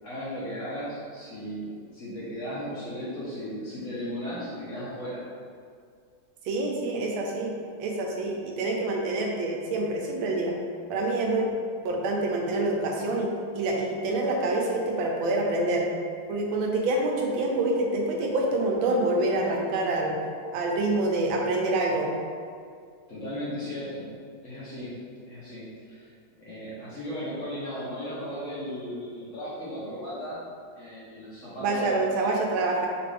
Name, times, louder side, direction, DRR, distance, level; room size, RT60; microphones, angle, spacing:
voice 1, 0.0-5.2 23.1-24.2 24.4-25.0 25.3-26.1 26.4-30.4 30.8-32.1, equal, 50° left, -9 dB, 1.1 m, -36 dB
voice 2, 6.4-7.5 7.8-10.5 10.9-11.5 11.8-15.9 16.3-20.2 20.5-22.1 31.6-32.9, right 2 dB, 90° right, 0 dB, 1.4 m, -26 dB
5.2 x 2.5 x 3.3 m, 2.2 s
omnidirectional pair, 2.1 m